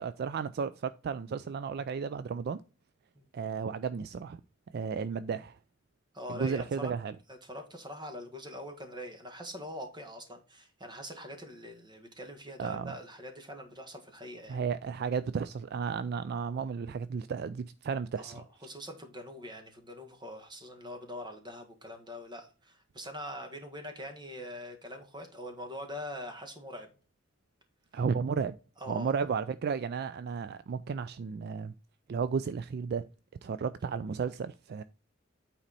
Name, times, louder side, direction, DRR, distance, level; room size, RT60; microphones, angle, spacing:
voice 1, 0.0-2.6 3.3-4.4 4.7-5.6 6.3-7.1 12.6-12.9 14.5-18.4 27.9-28.6 28.9-31.7 32.1-33.0 33.4-34.8, right 6 dB, 55° right, 0.3 m, -33 dB
voice 2, 6.1-6.9 7.3-14.6 18.2-26.9 28.8-29.1, equal, 25° right, 1.6 m, -43 dB
9.0 x 4.2 x 4.1 m
head